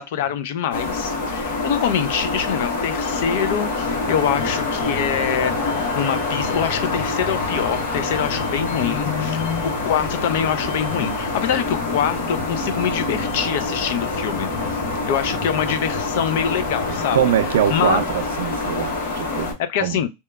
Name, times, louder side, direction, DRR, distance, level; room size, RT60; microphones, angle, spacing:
voice 1, 0.0-5.5 5.9-14.5 15.1-17.2 17.7-18.0 19.7-20.1, left 8 dB, 65° left, 0.4 m, -24 dB
sound 1, 0.7-19.5, left 3 dB, 85° left, 1.0 m, -26 dB
sound 2, 3.8-17.1, left 2 dB, 10° right, 0.5 m, -37 dB
voice 2, 17.1-20.0, right 10 dB, 85° right, 0.4 m, -23 dB
2.8 x 2.2 x 2.2 m
supercardioid pair, 150°, 0 cm